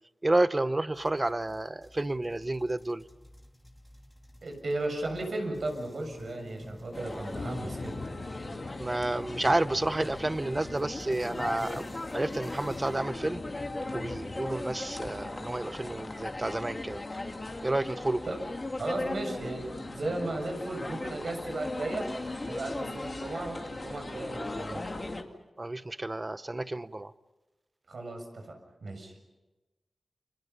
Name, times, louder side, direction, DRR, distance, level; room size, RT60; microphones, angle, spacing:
voice 1, 0.2-3.0 8.8-13.4 13.9-17.0 17.6-18.2 25.6-27.1, right 2 dB, 25° right, 14 dB, 0.8 m, -30 dB
sound 1, 0.9-13.1, left 1 dB, 5° left, 2.8 m, -52 dB
voice 2, 4.4-8.0 18.3-18.4 18.8-22.1 22.4-24.8 27.9-29.2, right 2 dB, 70° right, 3 dB, 6.8 m, -35 dB
sound 2, 6.9-25.2, left 2 dB, 30° left, 2.4 m, -38 dB
sound 3, 7.3-17.6, left 3 dB, 60° left, 3.1 m, -44 dB
30.0 x 27.5 x 5.6 m, 1.1 s
wide cardioid pair, 95°, 0 cm